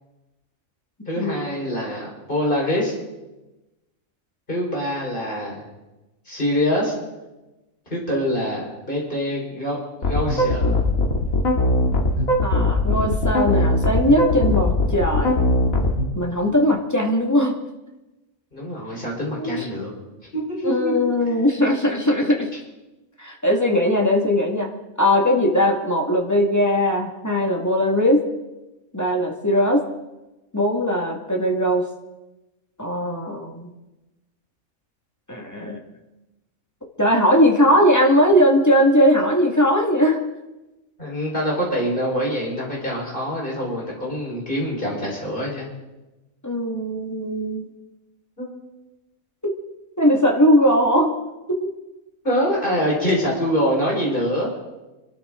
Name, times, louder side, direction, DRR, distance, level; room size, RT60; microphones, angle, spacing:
voice 1, 1.1-2.9 4.5-5.7 6.3-6.9 7.9-10.8 18.5-19.9 20.3-20.9 41.0-45.7 48.4-48.5 52.2-54.6, equal, 40° left, -3 dB, 5.2 m, -25 dB
sound 1, 10.0-16.0, left 1 dB, 85° left, 2.5 m, -20 dB
voice 2, 12.4-15.4 16.1-17.6 19.4-19.7 20.6-22.5 23.2-24.7 25.0-28.2 28.9-29.8 30.5-31.8 32.8-33.7 35.3-35.8 37.0-40.2 46.4-47.7 50.0-51.2 51.5-51.7, equal, 10° left, 0 dB, 2.1 m, -19 dB
25.5 x 13.0 x 3.9 m, 1.0 s
omnidirectional pair, 1.4 m